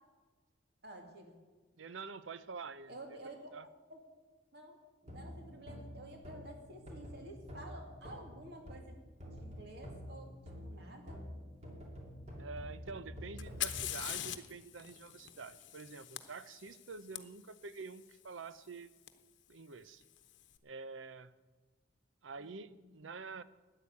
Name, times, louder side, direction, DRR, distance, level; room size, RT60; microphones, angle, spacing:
voice 1, 0.8-1.4 2.9-3.5 3.9-4.0 4.5-4.8 5.1-9.0 9.3-11.2 22.4-22.9, right 1 dB, 60° right, 3 dB, 2.5 m, -51 dB
voice 2, 1.8-3.2 3.5-3.7 12.4-18.9 19.5-20.0 20.6-21.3 22.2-23.4, right 4 dB, 90° right, 14 dB, 0.7 m, -47 dB
sound 1, 5.0-8.9 9.2-13.8, equal, 35° right, 2.7 m, -48 dB
Fire, 13.4-17.2 19.1-19.2 20.0-20.4, left 12 dB, 75° left, 0.9 m, -42 dB
12.5 x 9.8 x 8.6 m, 1.3 s
head